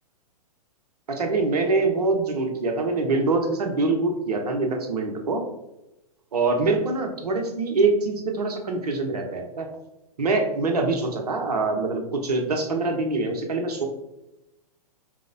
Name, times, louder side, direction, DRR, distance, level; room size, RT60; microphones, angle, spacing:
voice 1, 1.1-5.4 6.3-9.7 10.2-13.9, right 3 dB, 75° right, 3 dB, 0.8 m, -24 dB
4.8 x 2.0 x 2.5 m, 0.90 s
hypercardioid pair, 115°, 20 cm